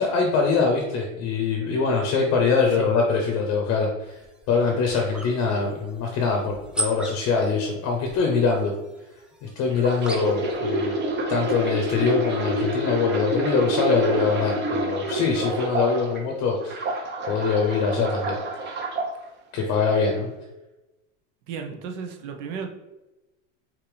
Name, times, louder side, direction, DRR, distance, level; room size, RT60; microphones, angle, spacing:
voice 1, 0.0-4.2 4.5-8.7 9.4-10.9 11.3-17.0 17.3-18.8 19.5-20.3, left 4 dB, 40° left, 1 dB, 0.9 m, -23 dB
sound 1, 4.0-10.6, right 1 dB, 5° right, 0.3 m, -38 dB
sound 2, 9.7-16.2 16.6-19.1 19.7-20.0, right 1 dB, 30° right, 1.0 m, -28 dB
voice 2, 21.5-22.7, right 6 dB, 50° right, 2 dB, 1.0 m, -34 dB
5.1 x 2.8 x 3.3 m, 1.0 s
supercardioid pair, 125°, 38 cm